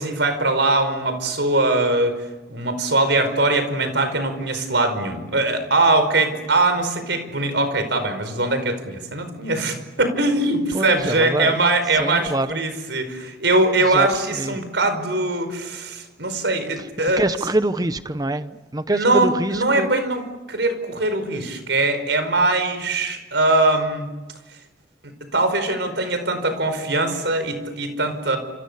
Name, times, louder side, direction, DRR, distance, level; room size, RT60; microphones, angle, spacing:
voice 1, 0.0-2.2 2.5-17.2 18.9-24.1 25.0-28.4, right 2 dB, 80° right, 5.0 m, -21 dB
voice 2, 10.7-11.6 12.0-12.5 13.9-14.1 14.4-14.5 17.2-19.9, right 1 dB, 20° right, 0.9 m, -24 dB
29.5 x 28.0 x 6.9 m
head